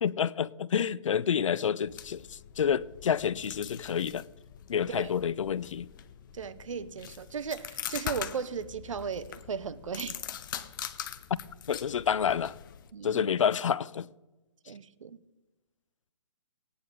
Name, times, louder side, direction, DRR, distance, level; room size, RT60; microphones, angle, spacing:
voice 1, 0.0-4.2 4.7-5.9 11.7-12.6 13.0-14.1, left 8 dB, 75° left, 0.5 m, -28 dB
sound 1, 1.8-12.9, left 10 dB, 40° left, 0.7 m, -43 dB
voice 2, 6.3-10.2 12.9-13.3 14.7-15.2, right 6 dB, 75° right, 0.8 m, -36 dB
18.5 x 9.6 x 3.8 m
hypercardioid pair, 145°, 16 cm